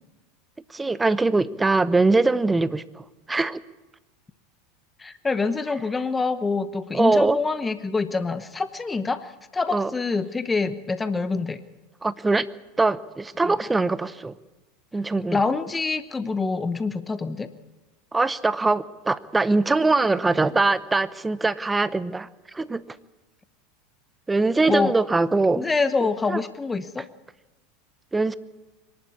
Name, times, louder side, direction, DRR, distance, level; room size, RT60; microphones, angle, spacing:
voice 1, 0.7-3.6 6.9-7.4 9.7-9.9 12.0-12.5 12.8-14.3 14.9-15.4 18.1-22.8 24.3-25.7 26.3-26.4 28.1-28.3, right 3 dB, 15° right, 17 dB, 0.8 m, -22 dB
voice 2, 5.0-11.6 13.4-13.5 15.3-17.5 24.7-24.9 25.5-27.1, left 4 dB, 15° left, 12 dB, 1.0 m, -26 dB
24.0 x 11.5 x 9.7 m, 1.2 s
hypercardioid pair, 90°, 0 cm